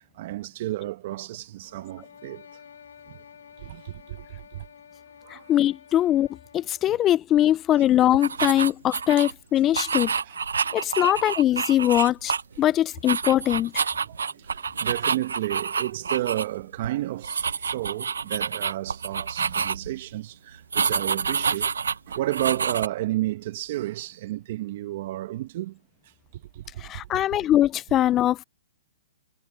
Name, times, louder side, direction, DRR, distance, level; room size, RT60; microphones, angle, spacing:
voice 1, 0.0-2.4 3.1-3.2 3.6-4.2 4.5-4.6 5.2-5.4 6.9-7.0 10.2-10.4 10.6-11.2 14.0-21.7 22.1-25.8 26.5-27.2, right 15 dB, 50° right, 1.1 m, -32 dB
sound 1, 1.6-7.0, left 7 dB, 75° left, 6.0 m, -50 dB
voice 2, 5.5-6.3 6.5-10.1 10.7-13.8 26.8-28.4, left 12 dB, 25° left, 0.4 m, -22 dB
sound 2, 8.1-9.3 9.7-12.7 13.0-16.4 16.7-16.9 17.2-20.0 20.7-22.9, right 6 dB, 85° right, 0.7 m, -28 dB
hypercardioid pair, 135°, 0 cm